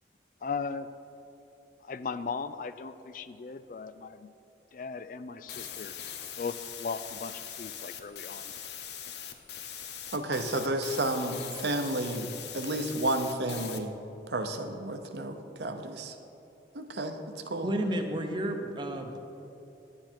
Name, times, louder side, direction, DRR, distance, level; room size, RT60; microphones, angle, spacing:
voice 1, 0.4-0.9 1.8-4.3 4.7-5.9 6.4-8.5, left 5 dB, 50° left, 12 dB, 0.3 m, -37 dB
sound 1, 5.5-13.8, left 9 dB, 70° left, 0.8 m, -42 dB
voice 2, 10.1-12.3 12.5-13.9 14.3-16.1 16.7-17.7, right 1 dB, 75° right, 7 dB, 0.8 m, -31 dB
voice 3, 17.6-19.2, right 1 dB, 25° right, 4 dB, 0.8 m, -31 dB
10.5 x 9.7 x 4.5 m, 2.9 s
head